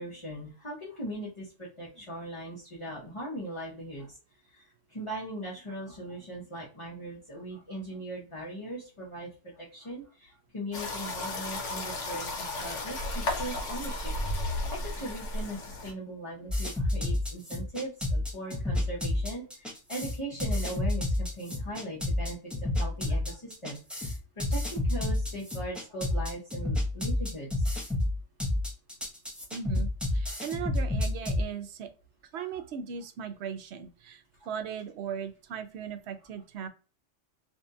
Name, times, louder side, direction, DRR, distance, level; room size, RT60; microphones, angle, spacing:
voice 1, 0.0-4.2 4.4-14.1 14.5-27.7 30.3-30.4 32.3-32.6 34.4-34.5, right 1 dB, 30° left, -5 dB, 0.9 m, -40 dB
sound 1, 10.7-15.9, left 1 dB, 80° left, 1.2 m, -34 dB
sound 2, 16.5-31.4, left 1 dB, ahead, 0.7 m, -29 dB
voice 2, 29.5-31.9 32.3-36.7, right 7 dB, 70° right, 7 dB, 0.8 m, -38 dB
2.7 x 2.7 x 2.3 m, 0.35 s
omnidirectional pair, 1.3 m